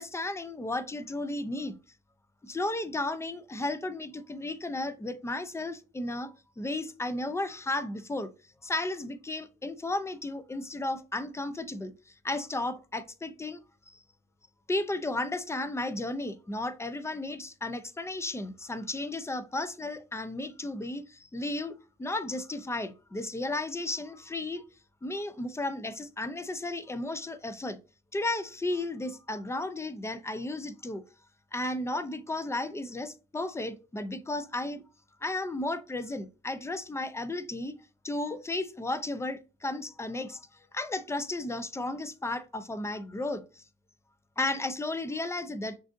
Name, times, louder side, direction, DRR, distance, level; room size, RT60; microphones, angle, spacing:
voice 1, 0.0-1.7 2.4-8.3 8.6-13.6 13.9-14.0 14.7-24.6 25.0-27.8 28.1-31.0 31.5-34.8 35.2-37.8 38.0-40.4 40.7-43.6 44.4-45.8, left 2 dB, 15° left, 0.5 m, -34 dB
6.2 x 2.5 x 2.5 m
cardioid pair, 90°, 20 cm